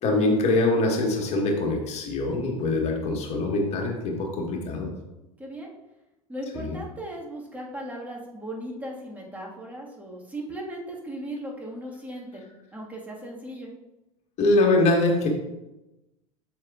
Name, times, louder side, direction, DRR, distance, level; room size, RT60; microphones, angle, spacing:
voice 1, 0.0-4.9 6.5-6.8 14.4-15.3, left 2 dB, 35° left, 1 dB, 1.7 m, -23 dB
voice 2, 5.4-5.7 6.3-13.7, right 1 dB, 10° right, -2 dB, 1.8 m, -37 dB
7.2 x 7.1 x 2.5 m, 0.97 s
figure-of-eight pair, 75°, 18 cm